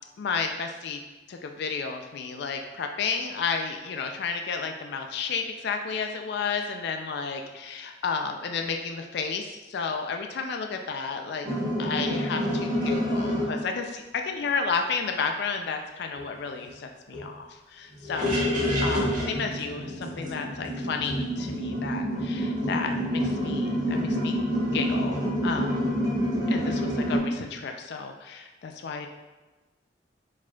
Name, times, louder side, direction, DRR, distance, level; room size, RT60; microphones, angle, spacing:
voice 1, 0.2-1.0 1.3-11.5 11.8-18.4 18.8-24.3 24.7-25.8 26.5-29.1, left 5 dB, 65° left, 4 dB, 0.4 m, -32 dB
sound 1, 11.4-13.5 16.2-16.3 16.6-16.7 17.1-17.2 17.9-27.2, equal, 50° right, 1.3 m, -27 dB
4.8 x 4.3 x 2.3 m, 1.2 s
head